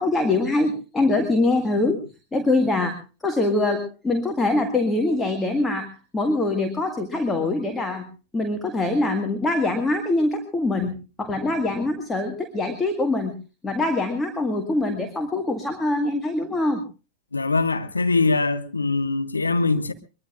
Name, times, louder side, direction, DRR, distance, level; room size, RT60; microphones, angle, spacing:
voice 1, 0.0-2.0 2.3-3.0 3.2-8.1 8.3-13.3 13.6-16.8, left 2 dB, 10° left, 1.9 m, -23 dB
voice 2, 17.3-19.9, left 3 dB, 80° left, 1.2 m, -22 dB
23.0 x 22.0 x 2.5 m
figure-of-eight pair, 90°, 0 cm